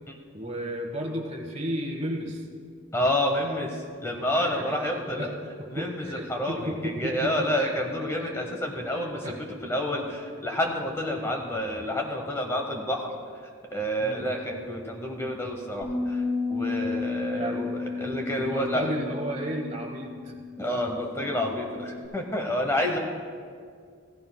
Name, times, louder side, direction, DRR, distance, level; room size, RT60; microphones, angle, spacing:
voice 1, 0.3-2.5 4.1-8.3 9.2-9.4 14.0-14.3 17.3-20.4 21.2-21.4, equal, 30° right, 2 dB, 1.2 m, -34 dB
voice 2, 2.9-5.3 5.7-13.1 13.7-16.2 16.5-18.9 20.6-23.0, left 1 dB, 15° left, 2 dB, 0.8 m, -29 dB
Bass guitar, 15.8-22.1, left 4 dB, 30° left, 3.1 m, -33 dB
16.0 x 15.0 x 2.2 m, 2.1 s
head